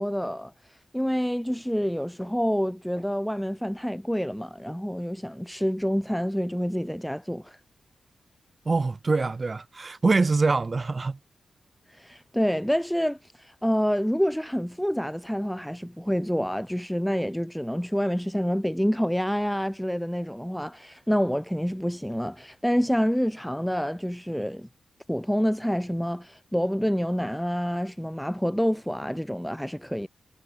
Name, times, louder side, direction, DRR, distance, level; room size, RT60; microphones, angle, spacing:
voice 1, 0.0-7.6 11.9-24.7 25.1-30.1, equal, ahead, 1.3 m, -27 dB
voice 2, 8.7-11.2, right 3 dB, 30° right, 5.5 m, -24 dB
wide cardioid pair, 110°, 0 cm